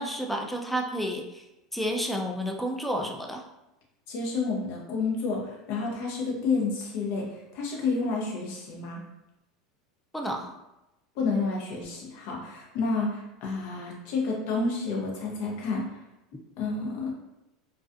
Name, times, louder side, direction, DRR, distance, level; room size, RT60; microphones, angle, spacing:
voice 1, 0.0-1.4 1.7-3.4 10.1-10.5, equal, 5° left, 2 dB, 0.4 m, -30 dB
voice 2, 4.1-9.0 11.2-15.8 16.6-17.1, left 4 dB, 65° left, -2 dB, 0.7 m, -30 dB
2.3 x 2.3 x 2.5 m, 0.93 s
hypercardioid pair, 95°, 2 cm